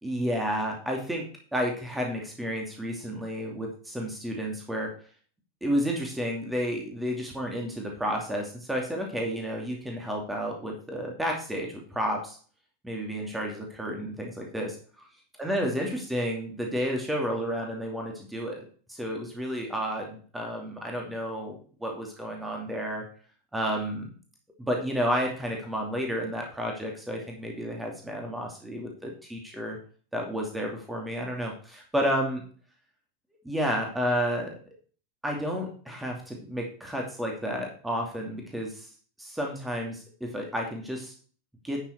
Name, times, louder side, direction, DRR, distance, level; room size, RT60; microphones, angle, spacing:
voice 1, 0.0-1.2 1.5-4.9 5.6-12.4 12.8-15.1 15.4-23.0 23.5-24.1 24.6-29.8 30.1-32.4 33.4-34.6 35.2-38.9 39.2-41.1 41.6-41.8, equal, 5° right, 0 dB, 2.6 m, -31 dB
11.5 x 6.6 x 4.6 m, 0.42 s
figure-of-eight pair, 90°, 0 cm